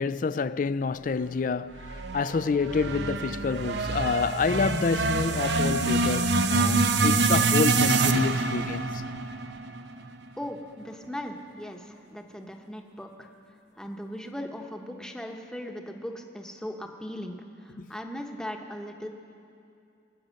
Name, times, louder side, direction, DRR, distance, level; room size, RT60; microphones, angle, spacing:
voice 1, 0.0-9.0 17.8-17.9, left 4 dB, 45° left, 0.4 m, -28 dB
sound 1, 1.8-10.1, right 3 dB, 70° right, 0.7 m, -26 dB
voice 2, 10.4-13.3 13.8-19.1, equal, 5° left, 1.0 m, -38 dB
25.0 x 8.9 x 6.4 m
head